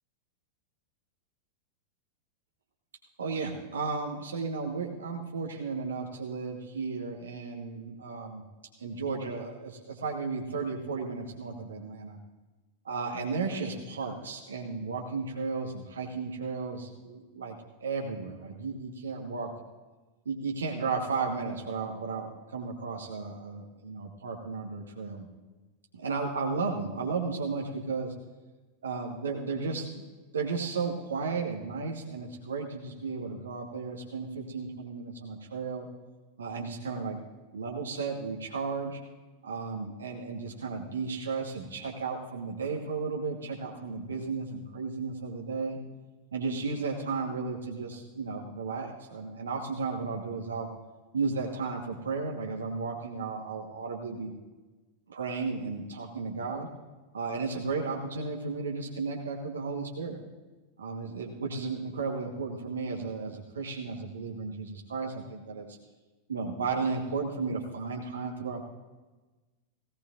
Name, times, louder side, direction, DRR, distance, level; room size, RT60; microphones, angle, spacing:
voice 1, 3.2-8.4 8.8-12.2 12.8-17.6 17.8-19.5 20.2-25.3 25.9-28.1 28.8-30.0 30.3-35.9 36.4-37.2 37.5-39.0 39.4-45.8 46.3-50.7 51.1-54.3 55.1-56.7 57.1-60.2 60.8-65.8 66.3-68.6, right 4 dB, 70° right, 0 dB, 1.4 m, -34 dB
17.5 x 17.0 x 2.6 m, 1.2 s
figure-of-eight pair, 90°, 0 cm